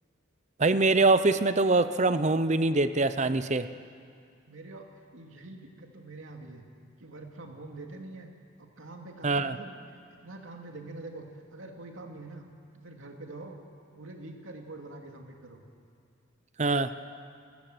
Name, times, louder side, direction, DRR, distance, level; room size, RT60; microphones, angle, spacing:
voice 1, 0.6-3.7 9.2-9.6 16.6-16.9, right 3 dB, 35° right, 12 dB, 0.8 m, -24 dB
voice 2, 4.5-4.9 5.1-6.6 7.0-8.3 8.6-11.3 11.5-12.4 12.7-13.6 13.9-15.6, right 2 dB, 85° right, 2 dB, 2.5 m, -45 dB
29.5 x 16.0 x 7.9 m, 2.3 s
head